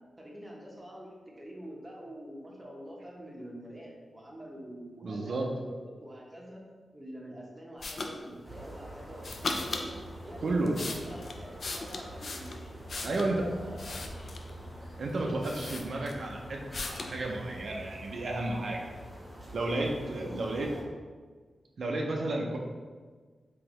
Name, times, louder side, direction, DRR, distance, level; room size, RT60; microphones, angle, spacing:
voice 1, 0.2-6.6 6.9-10.0 10.2-12.6 12.9-14.1 15.1-15.8 20.1-20.9, equal, 15° right, -3 dB, 0.7 m, -46 dB
voice 2, 5.0-5.5 10.4-10.8 13.0-13.4 15.0-16.6 16.9-18.8 19.5-20.7 21.8-22.6, right 2 dB, 60° right, 0 dB, 0.4 m, -32 dB
sound 1, 7.8-8.1 9.2-9.9 10.5-13.3 13.8-14.6 15.1-15.2 15.4-16.3 16.7-17.1, left 3 dB, 55° left, 0.3 m, -37 dB
sound 2, 8.4-20.8, equal, ahead, 1.1 m, -45 dB
3.8 x 2.9 x 2.9 m, 1.5 s
wide cardioid pair, 110°, 0 cm